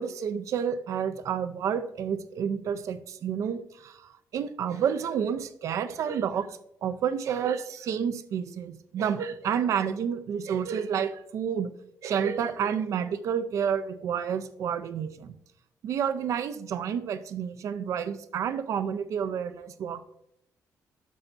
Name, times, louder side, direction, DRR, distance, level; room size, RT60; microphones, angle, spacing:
voice 1, 0.0-11.7 12.0-15.4 15.8-20.0, right 8 dB, 60° right, 11 dB, 0.6 m, -30 dB
11.5 x 5.6 x 2.6 m, 0.77 s
cardioid pair, 165°, 6 cm